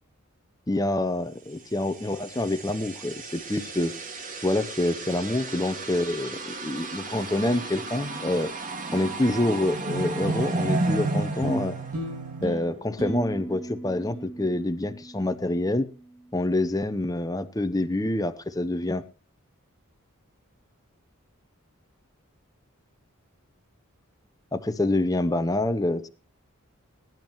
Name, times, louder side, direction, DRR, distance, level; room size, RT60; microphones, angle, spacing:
voice 1, 0.7-3.9 4.4-8.5 8.9-11.8 12.4-15.9 16.3-19.0 24.5-26.1, left 1 dB, 15° left, 10 dB, 0.7 m, -27 dB
sound 1, 1.9-12.6, right 2 dB, 40° right, 1.9 m, -32 dB
sound 2, 11.4-16.0, right 1 dB, 90° right, 6.8 m, -36 dB
21.0 x 10.5 x 3.0 m, 0.33 s
head